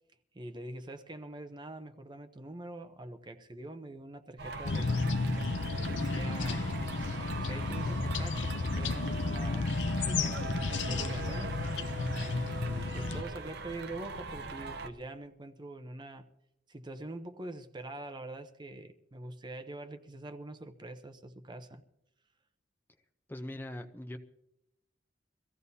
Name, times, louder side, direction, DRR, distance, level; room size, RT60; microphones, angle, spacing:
voice 1, 0.3-4.9 5.7-6.7 7.4-11.6 12.5-16.3 16.7-21.8, right 2 dB, 25° right, 9 dB, 0.7 m, -44 dB
sound 1, 4.4-14.9, right 3 dB, 65° right, 0.9 m, -41 dB
sound 2, 4.6-13.2, left 3 dB, 90° left, 0.7 m, -33 dB
voice 2, 23.3-24.2, left 1 dB, 10° left, 6 dB, 0.7 m, -41 dB
23.5 x 15.5 x 2.8 m, 0.82 s
head